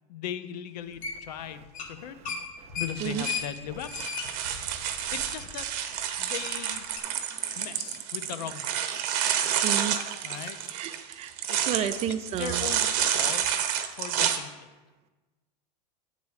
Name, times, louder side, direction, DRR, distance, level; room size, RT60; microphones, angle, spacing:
voice 1, 0.1-2.2 2.8-3.9 5.1-5.7 6.2-6.8 7.6-9.0 10.2-10.6 11.5-13.5 14.0-14.5, left 9 dB, 75° left, 12 dB, 0.6 m, -38 dB
sound 1, 1.0-1.4 1.7-1.9 2.2-5.6 6.0-6.1 7.0-7.1, left 6 dB, 40° left, 1.2 m, -35 dB
sound 2, 2.9-14.4, right 9 dB, 55° right, 0.8 m, -29 dB
voice 2, 9.6-10.0 10.7-11.3 11.7-12.6, right 10 dB, 30° right, 12 dB, 0.4 m, -31 dB
8.3 x 4.0 x 4.8 m, 1.2 s
hypercardioid pair, 115°, 21 cm